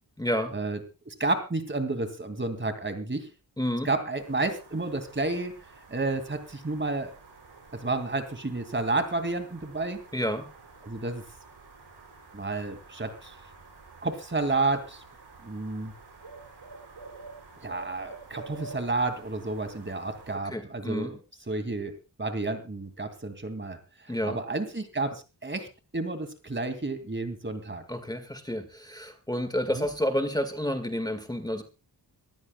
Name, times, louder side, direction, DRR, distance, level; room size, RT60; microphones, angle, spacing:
voice 1, 0.2-0.5 3.6-3.9 10.1-10.5 20.5-21.1 24.1-24.4 27.9-31.6, equal, 10° left, 7 dB, 1.8 m, -30 dB
voice 2, 1.1-3.3 3.8-5.5 5.9-7.1 7.7-10.0 10.8-11.2 12.3-13.3 14.0-15.0 15.4-15.9 17.6-21.2 21.5-23.8 24.1-25.7 25.9-27.8 29.7-29.9, right 3 dB, 30° right, 8 dB, 2.5 m, -31 dB
sound 1, 4.2-20.3, right 3 dB, 80° right, 5.6 m, -49 dB
24.5 x 14.5 x 2.3 m, 0.30 s
wide cardioid pair, 75°, 40 cm